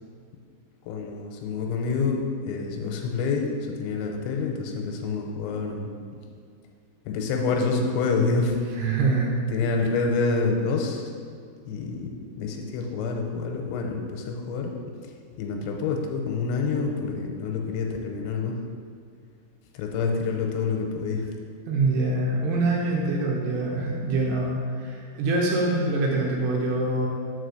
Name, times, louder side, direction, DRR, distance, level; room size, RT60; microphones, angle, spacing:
voice 1, 0.8-5.9 7.1-8.6 9.5-11.1 11.7-12.1 12.4-14.7 15.0-18.5 19.7-21.3, left 4 dB, 85° left, 2 dB, 2.9 m, -27 dB
voice 2, 8.8-9.3 21.7-27.1, right 2 dB, 75° right, -2 dB, 2.7 m, -25 dB
6.1 x 4.9 x 6.5 m, 2.2 s
omnidirectional pair, 5.3 m